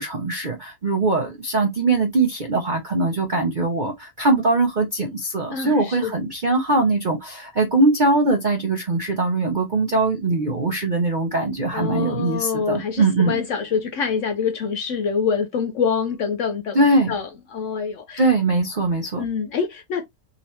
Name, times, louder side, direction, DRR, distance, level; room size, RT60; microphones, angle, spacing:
voice 1, 0.0-13.4 16.7-17.1 18.2-19.2, right 2 dB, 55° right, 0.5 m, -21 dB
voice 2, 5.5-6.1 11.7-18.2 19.2-20.1, left 6 dB, 70° left, 0.7 m, -26 dB
3.7 x 2.9 x 3.1 m
omnidirectional pair, 1.7 m